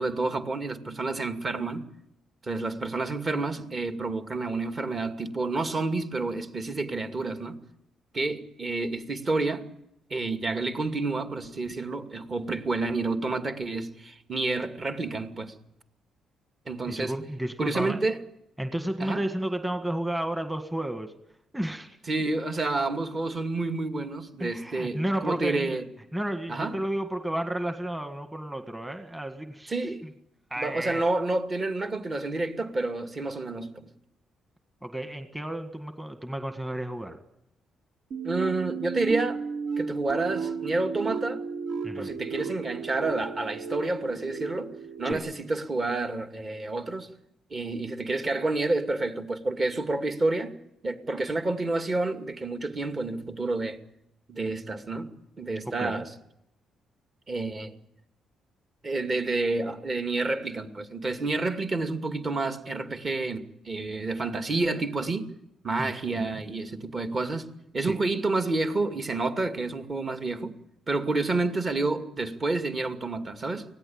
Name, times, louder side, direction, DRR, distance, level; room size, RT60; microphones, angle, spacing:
voice 1, 0.0-1.8 2.4-7.6 8.1-9.6 10.1-15.5 16.7-17.1 17.6-18.2 19.0-19.2 22.1-25.8 26.5-26.8 29.7-30.0 30.6-33.9 38.2-39.4 39.8-41.4 42.0-44.7 45.0-47.1 47.5-50.5 50.8-53.8 54.3-55.1 55.4-56.1 57.3-57.7 58.8-65.3 65.6-67.5 67.7-70.5 70.9-73.7, right 3 dB, 35° right, 2.4 m, -29 dB
voice 2, 16.9-18.0 18.6-21.1 21.5-22.0 24.4-25.8 26.1-29.9 30.5-31.0 34.8-37.2 41.8-42.1 45.0-45.2 55.6-56.0 65.8-66.4 67.8-68.0, right 1 dB, 10° right, 1.8 m, -32 dB
sound 1, 38.1-45.1, right 5 dB, 75° right, 3.4 m, -34 dB
24.0 x 17.5 x 8.8 m
cardioid pair, 90°, 0 cm